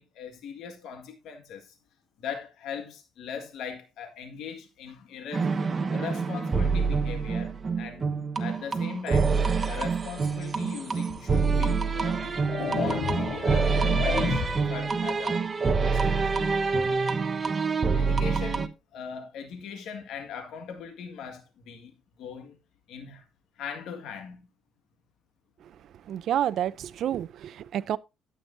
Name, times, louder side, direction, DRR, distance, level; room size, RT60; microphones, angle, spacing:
voice 1, 0.0-1.8 2.2-5.5 5.9-8.1 8.4-9.4 9.7-12.2 12.7-15.4 15.8-16.3 17.9-21.9 22.2-22.6 22.9-23.2 23.6-24.5, left 6 dB, 75° left, 1.8 m, -40 dB
sound 1, 5.3-18.7, right 4 dB, 30° right, 1.1 m, -26 dB
sound 2, 11.1-11.2 12.0-14.8, left 5 dB, 50° left, 4.5 m, -32 dB
voice 2, 25.6-28.0, right 10 dB, 60° right, 0.5 m, -30 dB
13.0 x 8.6 x 2.6 m
cardioid pair, 125°, 0 cm